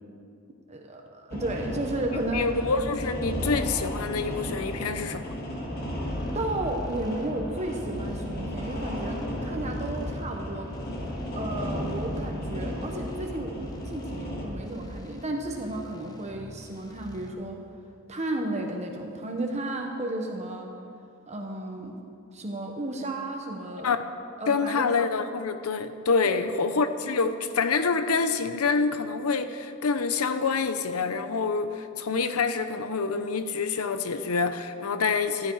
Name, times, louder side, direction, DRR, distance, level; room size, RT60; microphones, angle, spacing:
voice 1, 0.7-2.6 6.3-10.7 11.3-17.6 18.1-20.7 21.3-22.0 22.3-23.9 24.4-24.9 26.2-26.4, right 1 dB, 30° right, 2 dB, 1.1 m, -33 dB
sound 1, 1.3-14.5, equal, 45° left, 2.2 m, -34 dB
voice 2, 2.1-5.2 23.8-24.0 24.5-35.5, left 4 dB, 90° left, 10 dB, 0.7 m, -27 dB
sound 2, 6.1-17.3, left 1 dB, 20° left, 0.9 m, -46 dB
14.5 x 12.0 x 4.7 m, 2.5 s
head